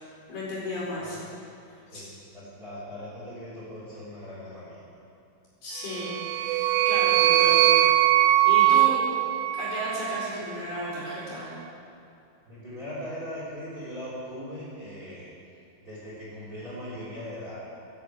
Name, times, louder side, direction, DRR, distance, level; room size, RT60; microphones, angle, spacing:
voice 1, 0.3-1.2 1.9-2.1 5.6-7.8 8.2-9.0 9.5-11.5, left 1 dB, 45° left, -7 dB, 5.9 m, -34 dB
voice 2, 2.3-4.8 12.5-15.3 15.8-17.6, equal, 20° right, -8 dB, 5.2 m, -39 dB
sound 1, 5.9-10.3, right 13 dB, 85° right, 2.4 m, -21 dB
13.0 x 13.0 x 8.4 m, 2.6 s
omnidirectional pair, 5.4 m